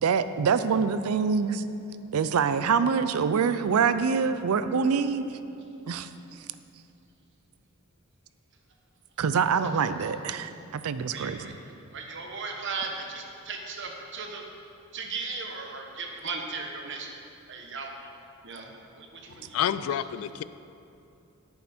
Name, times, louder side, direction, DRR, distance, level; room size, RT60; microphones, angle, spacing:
voice 1, 0.0-1.6 2.1-5.4 5.9-6.1 9.2-11.4, right 6 dB, 85° right, 12 dB, 0.4 m, -25 dB
voice 2, 11.1-11.5 11.9-14.4 14.9-17.2 17.5-17.9 18.4-19.8, right 4 dB, 55° right, 2 dB, 1.1 m, -37 dB
voice 3, 19.5-20.4, left 9 dB, 75° left, 14 dB, 0.3 m, -28 dB
10.5 x 8.7 x 4.3 m, 2.7 s
head